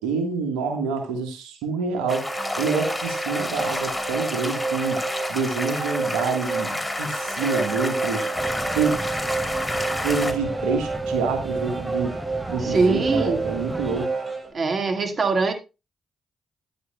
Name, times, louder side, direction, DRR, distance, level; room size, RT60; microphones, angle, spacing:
voice 1, 0.0-5.0 5.3-8.2 8.7-9.0 10.0-12.1 12.5-14.1, right 5 dB, 90° right, 4 dB, 1.5 m, -27 dB
sound 1, 1.9-14.5, right 4 dB, 35° right, 7.2 m, -30 dB
sound 2, 2.1-10.3, left 1 dB, 20° left, 3.0 m, -30 dB
sound 3, 8.4-14.1, right 1 dB, 15° right, 1.0 m, -35 dB
voice 2, 12.6-13.4 14.5-15.5, right 3 dB, 50° right, 6 dB, 1.8 m, -22 dB
14.0 x 10.0 x 2.3 m, 0.27 s
hypercardioid pair, 45°, 0 cm